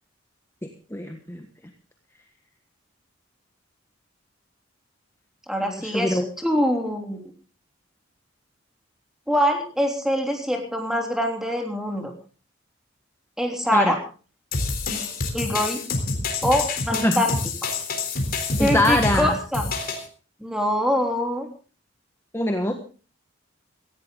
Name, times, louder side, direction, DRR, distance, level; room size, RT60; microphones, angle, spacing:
voice 1, 0.9-1.4 5.6-6.3 13.7-13.9 17.0-17.2 18.6-19.3 22.3-22.7, left 1 dB, 15° left, 4 dB, 1.4 m, -23 dB
voice 2, 5.5-7.2 9.3-12.1 13.4-14.0 15.3-15.8 16.4-17.3 17.6-17.7 18.6-19.7 20.4-21.5, equal, 5° right, 2 dB, 3.4 m, -24 dB
sound 1, 14.5-20.1, left 3 dB, 50° left, 3.7 m, -27 dB
17.0 x 16.5 x 3.8 m, 0.37 s
head